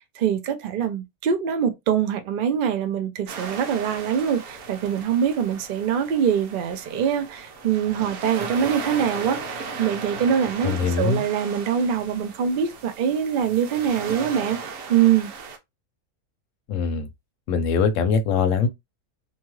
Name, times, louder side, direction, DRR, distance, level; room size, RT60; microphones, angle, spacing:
voice 1, 0.2-14.6 14.9-15.3, right 8 dB, 60° right, 0.5 m, -24 dB
sound 1, 3.3-15.6, right 4 dB, 90° right, 1.2 m, -36 dB
voice 2, 10.6-11.2 16.7-17.1 17.5-18.7, left 5 dB, 70° left, 0.9 m, -22 dB
2.7 x 2.3 x 3.0 m
omnidirectional pair, 1.5 m